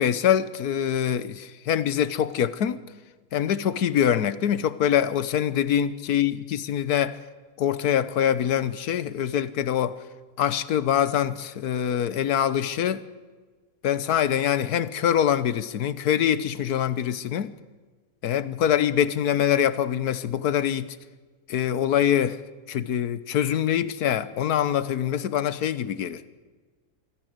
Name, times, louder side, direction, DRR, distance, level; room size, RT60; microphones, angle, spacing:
voice 1, 0.0-2.8 3.3-7.2 7.6-10.0 10.4-13.0 13.8-17.5 18.2-21.0 21.5-22.4 22.7-26.2, left 9 dB, 75° left, 1.4 m, -24 dB
24.0 x 14.5 x 7.9 m
omnidirectional pair, 1.7 m